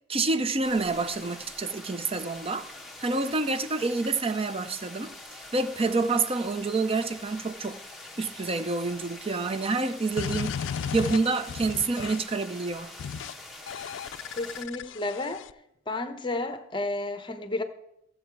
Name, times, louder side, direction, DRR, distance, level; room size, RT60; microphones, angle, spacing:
voice 1, 0.1-2.7 3.0-5.1 5.5-7.8 8.2-10.6 10.9-12.9, right 3 dB, 30° right, 0.6 m, -28 dB
sound 1, 0.6-14.6, left 2 dB, ahead, 1.2 m, -45 dB
sound 2, 10.2-12.4 13.0-13.3 13.7-15.5, left 7 dB, 65° left, 0.3 m, -35 dB
voice 2, 14.3-15.4 15.9-17.6, left 2 dB, 25° left, 0.9 m, -32 dB
15.0 x 7.5 x 4.6 m
head